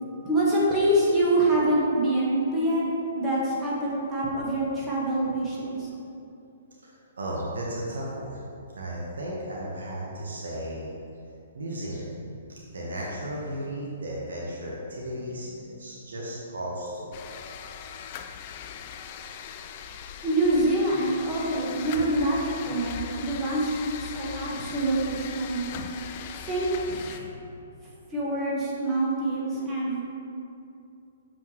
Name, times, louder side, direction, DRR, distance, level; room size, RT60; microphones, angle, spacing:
voice 1, 0.0-2.8 3.1-5.9 20.2-25.8 26.4-27.3 28.1-30.0, right 1 dB, 15° right, -6 dB, 1.6 m, -26 dB
voice 2, 6.8-8.4 8.7-10.9 11.5-12.2 12.7-17.2 19.1-19.2, right 1 dB, 75° right, -4 dB, 1.2 m, -35 dB
sound 1, 17.1-27.2, left 8 dB, 45° left, 0.4 m, -39 dB
6.8 x 6.0 x 3.2 m, 2.6 s
hypercardioid pair, 130°, 0 cm